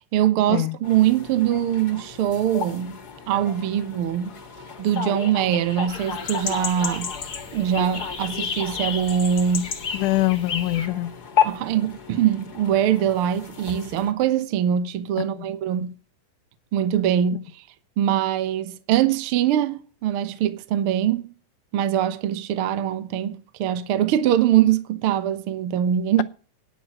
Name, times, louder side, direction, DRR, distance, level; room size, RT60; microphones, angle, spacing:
voice 1, 0.1-3.0 3.3-4.3 4.8-7.1 7.5-9.7 11.4-15.9 16.7-17.6 18.0-21.3 21.7-26.2, right 10 dB, 90° right, 1.2 m, -23 dB
sound 1, 0.8-14.1, left 7 dB, 35° left, 1.9 m, -33 dB
sound 2, 5.9-10.9, left 6 dB, 50° left, 1.1 m, -33 dB
voice 2, 9.9-11.1 15.4-15.5, left 16 dB, 75° left, 2.1 m, -23 dB
10.5 x 6.9 x 7.4 m
omnidirectional pair, 4.0 m